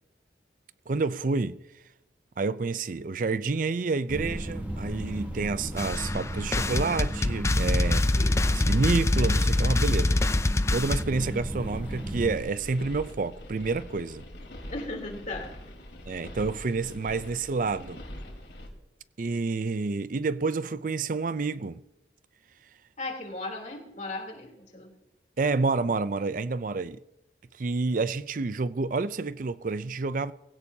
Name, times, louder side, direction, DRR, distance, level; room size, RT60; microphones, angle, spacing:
voice 1, 0.9-1.6 2.4-8.0 8.5-10.2 10.7-14.2 16.1-18.0 19.2-21.8 25.4-27.0 27.6-30.3, right 4 dB, 45° right, 0.4 m, -29 dB
sound 1, 4.1-12.4, equal, 10° right, 1.1 m, -35 dB
sound 2, 4.3-18.7, left 1 dB, 75° left, 3.9 m, -44 dB
sound 3, 5.8-11.0, left 2 dB, 15° left, 0.4 m, -25 dB
voice 2, 14.7-15.8 23.0-24.9, left 2 dB, 40° left, 3.2 m, -37 dB
20.5 x 17.0 x 2.8 m
head